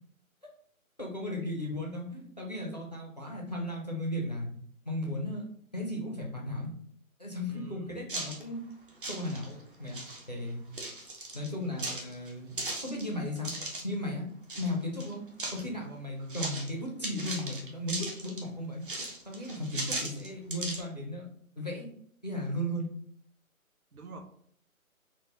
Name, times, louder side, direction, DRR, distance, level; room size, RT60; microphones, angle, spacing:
voice 1, 1.0-4.5 4.9-5.4 5.7-6.7 7.2-8.6 9.1-10.0 10.3-10.6 11.3-13.5 13.8-14.3 14.6-15.2 15.5-18.8 19.3-21.3 21.6-21.9 22.2-22.9, left 1 dB, 30° left, -1 dB, 0.4 m, -35 dB
voice 2, 7.5-7.9 16.2-16.4 23.9-24.2, right 3 dB, 85° right, 4 dB, 0.8 m, -47 dB
sound 1, 8.1-8.4 8.9-9.6 9.9-10.3 10.7-11.5 11.8-13.9 14.5-14.7 15.0-15.7 16.3-16.7 17.0-18.5 18.8-20.8, right 2 dB, 40° right, 0.6 m, -37 dB
3.8 x 2.0 x 2.7 m, 0.64 s
figure-of-eight pair, 150°, 43 cm